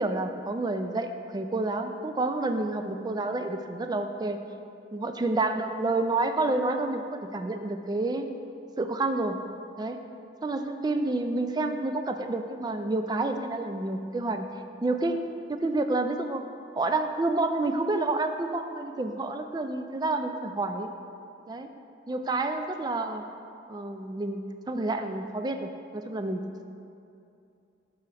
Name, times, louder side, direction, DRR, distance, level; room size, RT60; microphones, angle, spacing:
voice 1, 0.0-4.4 4.9-8.3 8.8-9.4 9.8-10.0 10.4-14.5 14.8-15.2 15.5-16.4 16.8-20.9 21.5-21.7 22.1-23.2 23.7-24.4 24.7-26.4, right 2 dB, 20° right, 7 dB, 0.3 m, -29 dB
6.2 x 4.7 x 5.7 m, 2.6 s
head